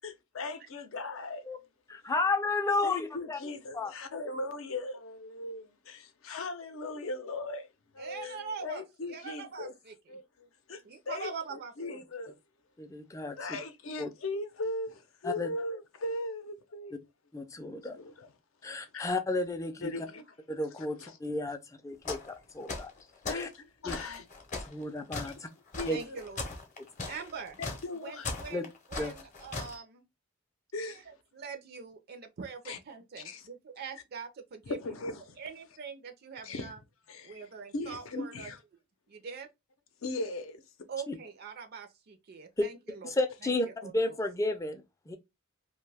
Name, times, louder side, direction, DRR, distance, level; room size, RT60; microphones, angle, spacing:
voice 1, 0.0-1.4 2.8-7.7 7.9-9.7 10.1-12.4 13.4-16.9 17.9-18.3 18.6-19.1 19.8-20.2 20.8-21.2 23.2-24.3 24.6-24.7 25.2-25.3 25.8-26.2 27.1-27.2 27.6-28.3 30.7-31.0 32.6-32.8 33.2-33.5 34.7-35.4 36.4-36.7 37.1-37.5 37.7-38.6 40.0-40.6, left 2 dB, 75° left, 0.6 m, -39 dB
voice 2, 1.9-3.4 3.7-3.9 12.8-13.4 14.0-14.1 15.2-15.5 17.3-18.0 18.6-19.9 20.5-21.6 21.8-22.9 23.3-23.5 23.9-24.0 24.6-25.5 25.9-26.0 28.5-28.6 29.0-29.1 41.1-41.2 42.6-42.7 43.0-45.2, left 2 dB, 15° left, 0.4 m, -32 dB
voice 3, 8.0-8.8 9.1-9.9 10.8-12.0 20.0-20.1 25.9-26.6 27.1-27.6 28.0-30.0 30.9-34.8 35.4-36.8 37.2-38.5 39.1-39.5 40.9-43.1 43.4-44.0, right 5 dB, 50° right, 0.4 m, -43 dB
sound 1, 22.1-22.4 22.7-23.5 23.9-29.8, left 3 dB, 35° left, 0.7 m, -38 dB
2.6 x 2.2 x 3.2 m
head